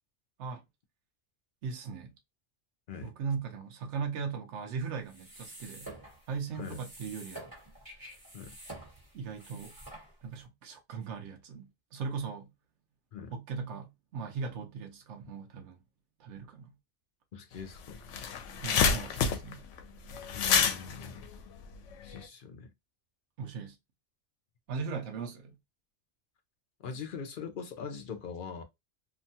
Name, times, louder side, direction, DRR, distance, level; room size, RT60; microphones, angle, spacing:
voice 1, 1.6-2.2 3.0-5.9 6.3-7.5 9.1-9.8 10.2-12.5 13.3-15.8 16.2-16.7 18.6-19.6 23.4-23.8 24.7-25.6, right 5 dB, 75° right, 0.9 m, -38 dB
sound 1, 5.0-10.4, right 1 dB, 20° right, 1.2 m, -49 dB
voice 2, 17.3-18.0 20.3-21.3 22.0-22.7 26.8-28.6, left 6 dB, 55° left, 0.6 m, -42 dB
sound 2, 17.6-17.7 17.9-22.2, left 6 dB, 85° left, 0.9 m, -28 dB
2.8 x 2.3 x 2.7 m
omnidirectional pair, 1.2 m